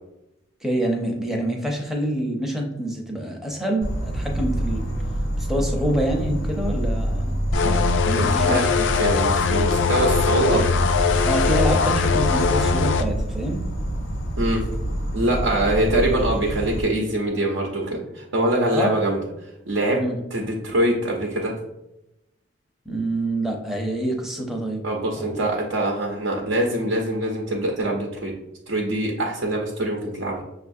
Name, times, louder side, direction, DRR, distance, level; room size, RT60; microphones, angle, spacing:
voice 1, 0.6-4.9 5.4-8.7 11.2-13.6 18.7-18.9 19.9-20.2 22.9-24.9 25.2-25.4, right 1 dB, ahead, 1 dB, 0.5 m, -26 dB
Insect, 3.8-16.8, right 1 dB, 90° left, 0.7 m, -26 dB
sound 1, 7.5-13.0, left 5 dB, 65° left, 0.3 m, -21 dB
voice 2, 9.0-10.6 14.4-14.6 15.1-19.2 19.7-20.0 20.3-21.5 24.8-28.3 28.7-30.4, right 1 dB, 70° right, -1 dB, 0.6 m, -23 dB
6.2 x 2.4 x 2.6 m, 0.90 s
head